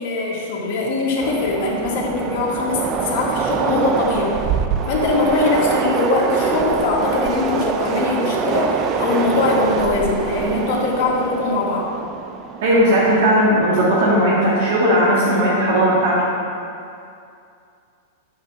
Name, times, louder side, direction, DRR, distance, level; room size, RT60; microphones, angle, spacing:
voice 1, 0.0-4.4 4.9-11.9, left 3 dB, 55° left, -3 dB, 1.7 m, -21 dB
Train, 1.2-13.5, right 6 dB, 30° right, 0.4 m, -25 dB
voice 2, 12.6-16.2, equal, 65° right, -6 dB, 1.6 m, -16 dB
8.4 x 4.1 x 6.0 m, 2.5 s
supercardioid pair, 155°, 0 cm